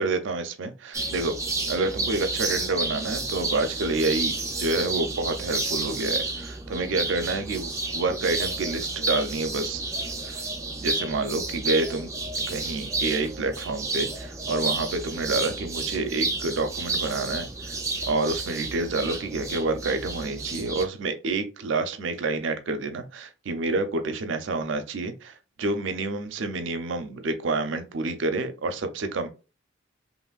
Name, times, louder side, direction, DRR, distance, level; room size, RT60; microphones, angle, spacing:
voice 1, 0.0-1.3 1.7-9.8 10.3-10.4 10.8-12.1 12.5-17.8 18.1-29.3, right 3 dB, 80° right, 0.5 m, -28 dB
sound 1, 0.9-20.8, right 3 dB, 15° right, 0.3 m, -31 dB
3.0 x 2.5 x 2.3 m
head